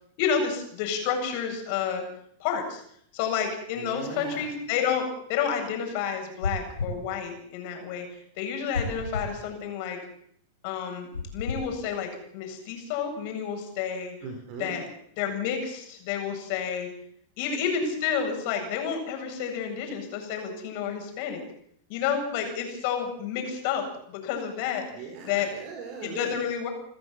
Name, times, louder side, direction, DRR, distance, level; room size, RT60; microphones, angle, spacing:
voice 1, 0.2-2.0 2.4-2.8 3.1-5.0 5.3-8.1 8.4-10.0 10.6-11.1 11.3-14.1 14.6-14.9 15.2-16.9 17.4-21.4 21.9-24.8 25.3-25.5 26.0-26.7, left 7 dB, 50° left, 4 dB, 7.7 m, -30 dB
voice 2, 3.8-4.5 14.2-14.8 24.9-26.4, right 5 dB, 50° right, 4 dB, 4.7 m, -39 dB
sound 1, 6.4-7.0 8.7-9.3 11.1-11.6, left 3 dB, 85° left, 4.0 m, -31 dB
29.5 x 14.0 x 7.6 m, 0.68 s
figure-of-eight pair, 95°, 0 cm